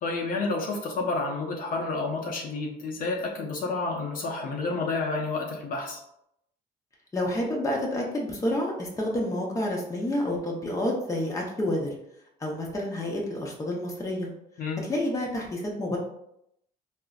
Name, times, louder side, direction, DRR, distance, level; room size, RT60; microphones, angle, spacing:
voice 1, 0.0-6.0 14.6-14.8, left 3 dB, 55° left, 0 dB, 0.6 m, -30 dB
voice 2, 7.1-11.9 12.4-14.3 14.8-16.0, left 1 dB, 20° left, -1 dB, 0.7 m, -29 dB
3.9 x 2.1 x 2.3 m, 0.77 s
cardioid pair, 110°, 17 cm